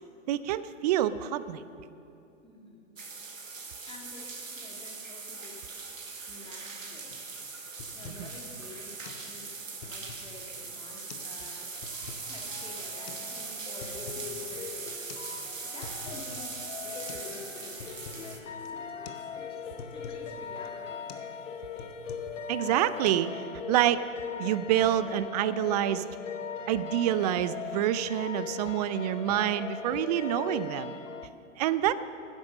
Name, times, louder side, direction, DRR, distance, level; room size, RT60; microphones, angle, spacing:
voice 1, 0.3-1.6 8.1-8.2 22.5-23.4 23.7-24.0 24.4-26.0 26.7-31.0 31.6-31.9, right 12 dB, 35° right, 15 dB, 0.5 m, -27 dB
voice 2, 2.4-2.9 3.9-5.8 6.3-7.1 7.9-15.0 15.6-21.1, left 3 dB, 15° left, -2 dB, 2.5 m, -50 dB
sound 1, 3.0-18.4, right 4 dB, 85° right, 1.6 m, -40 dB
sound 2, 7.1-7.3 7.6-8.3 8.6-8.7 9.0-9.2 9.6-10.4 11.0-11.3 11.6-12.3 13.1-13.2 13.6-14.3 14.6-14.7 15.1-15.3 15.6-16.3 16.6-16.7 17.1-17.3 17.6-18.3 18.6-18.8 19.1-19.2 19.5-20.3 20.6-20.8 21.1-21.3 21.6-22.4 22.7-23.1, left 6 dB, 55° left, 1.2 m, -47 dB
sound 3, 11.9-31.3, left 6 dB, 75° left, 1.0 m, -40 dB
13.0 x 9.9 x 6.4 m, 2.8 s
figure-of-eight pair, 115°, 38 cm